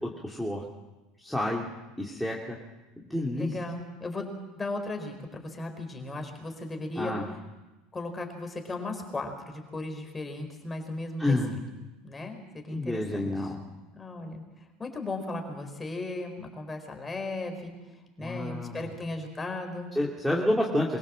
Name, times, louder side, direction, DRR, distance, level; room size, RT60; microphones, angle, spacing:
voice 1, 0.0-0.6 1.2-1.7 2.0-2.6 3.0-3.5 7.0-7.3 11.2-11.5 12.7-13.6 18.2-18.7 20.0-21.0, left 1 dB, ahead, -2 dB, 2.6 m, -29 dB
voice 2, 3.3-7.2 7.9-11.6 12.0-13.5 13.9-14.4 14.8-19.9, left 2 dB, 15° left, 5 dB, 4.4 m, -36 dB
24.0 x 16.0 x 7.6 m, 1.1 s
supercardioid pair, 115°, 0 cm